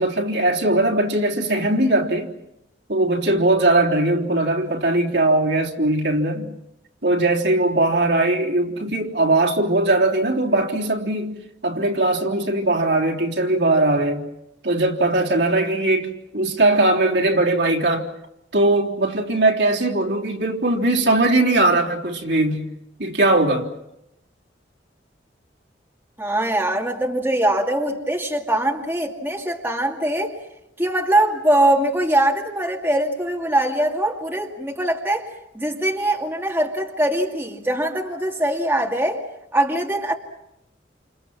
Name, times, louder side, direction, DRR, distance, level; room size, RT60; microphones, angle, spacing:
voice 1, 0.0-2.3 2.9-6.5 7.0-11.4 11.6-14.2 14.6-18.1 18.5-22.6 23.0-23.7, right 2 dB, 65° right, 3.4 m, -20 dB
voice 2, 26.2-30.3 30.8-35.2 35.5-39.2 39.5-40.1, right 1 dB, 10° right, 2.4 m, -22 dB
29.0 x 28.5 x 6.1 m
head